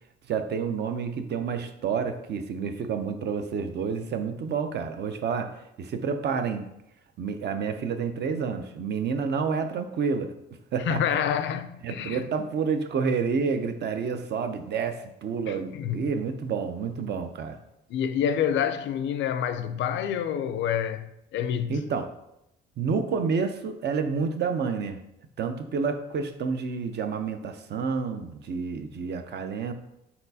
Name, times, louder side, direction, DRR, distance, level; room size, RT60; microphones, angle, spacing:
voice 1, 0.3-5.5 5.8-6.7 7.2-10.3 10.7-11.0 11.8-17.6 21.7-22.1 22.8-25.0 25.4-29.7, right 5 dB, 60° right, 0.5 m, -29 dB
voice 2, 10.9-12.3 15.5-16.1 17.9-21.8, left 8 dB, 70° left, 0.4 m, -28 dB
4.3 x 4.0 x 2.7 m
cardioid pair, 90°, 20 cm